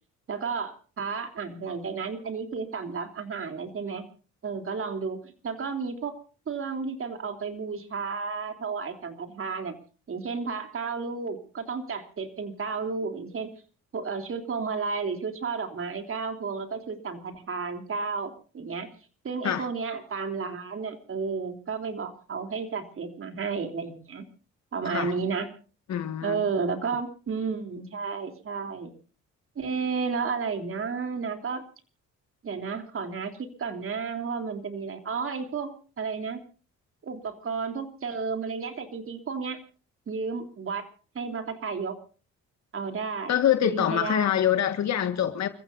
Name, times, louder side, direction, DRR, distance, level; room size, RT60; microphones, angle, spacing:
voice 1, 0.3-4.0 4.4-6.1 6.5-9.8 10.1-13.5 13.9-18.9 19.2-24.2 24.7-25.5 26.2-28.9 29.5-31.6 32.4-35.7 36.0-36.4 37.0-39.6 40.1-40.8 41.1-42.0 42.7-43.3 43.6-44.3, right 5 dB, 45° right, 3.3 m, -32 dB
voice 2, 25.9-26.4 43.3-45.5, left 10 dB, 60° left, 1.8 m, -25 dB
29.5 x 15.0 x 2.6 m
cardioid pair, 90°, 30 cm